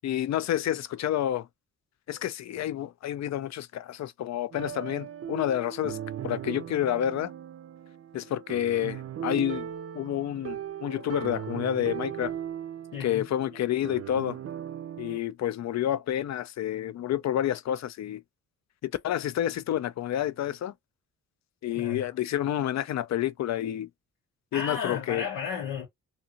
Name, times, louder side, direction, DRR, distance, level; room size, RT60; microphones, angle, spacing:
voice 1, 0.0-1.5 2.1-6.0 6.2-7.3 8.1-9.7 9.9-12.3 13.0-14.4 15.0-18.2 18.8-20.7 21.6-23.9 24.5-25.2, left 11 dB, 50° left, 0.4 m, -29 dB
sound 1, 4.5-15.2, right 10 dB, 40° right, 0.5 m, -38 dB
voice 2, 12.9-13.2 21.7-22.1 24.5-25.9, left 7 dB, 90° left, 0.8 m, -33 dB
2.7 x 2.3 x 2.8 m
supercardioid pair, 50°, 36 cm